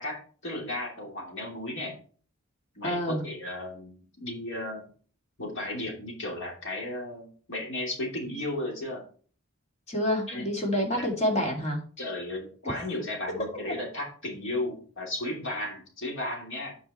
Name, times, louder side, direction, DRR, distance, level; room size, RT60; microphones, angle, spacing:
voice 1, 0.0-1.9 2.8-4.8 5.4-9.0 10.3-10.5 10.9-11.1 12.0-16.7, left 1 dB, 55° left, 0 dB, 2.9 m, -34 dB
voice 2, 2.8-3.2 9.9-11.8, left 1 dB, 30° left, 0 dB, 2.3 m, -27 dB
8.3 x 5.4 x 4.3 m, 0.42 s
head